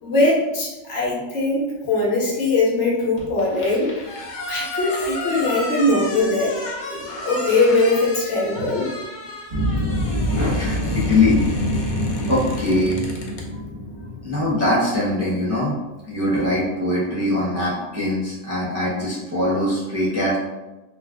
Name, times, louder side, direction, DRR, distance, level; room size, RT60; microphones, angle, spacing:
voice 1, 0.0-3.9 4.5-6.5 6.9-8.9, left 2 dB, 70° left, -3 dB, 1.1 m, -21 dB
sound 1, 3.2-13.5, left 2 dB, 55° left, 0.5 m, -33 dB
sound 2, 9.5-15.7, equal, 40° right, 0.8 m, -26 dB
voice 2, 10.3-11.4 12.3-13.0 14.2-15.7 16.0-20.4, left 1 dB, 20° right, -7 dB, 0.4 m, -22 dB
2.4 x 2.4 x 3.4 m, 1.1 s
omnidirectional pair, 1.3 m